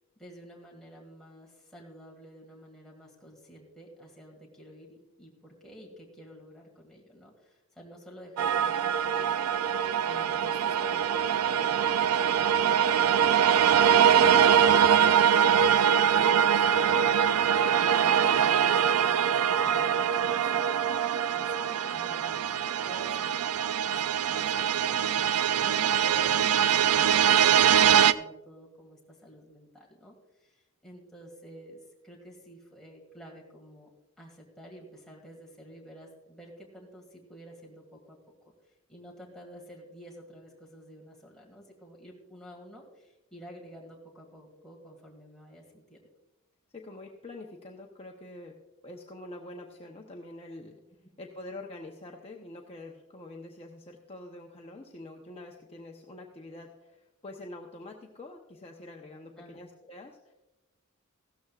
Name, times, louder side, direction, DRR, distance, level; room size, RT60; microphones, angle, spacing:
voice 1, 0.2-9.6 10.1-20.8 21.3-33.9 34.2-38.2 38.6-46.0 59.4-59.6, equal, ahead, -3 dB, 2.0 m, -50 dB
sound 1, 8.4-28.1, right 8 dB, 80° right, 0.4 m, -23 dB
voice 2, 18.1-18.5 46.7-48.5 48.8-50.8 51.2-60.3, left 2 dB, 30° left, 1 dB, 0.8 m, -45 dB
16.0 x 13.0 x 2.4 m, 1.0 s
head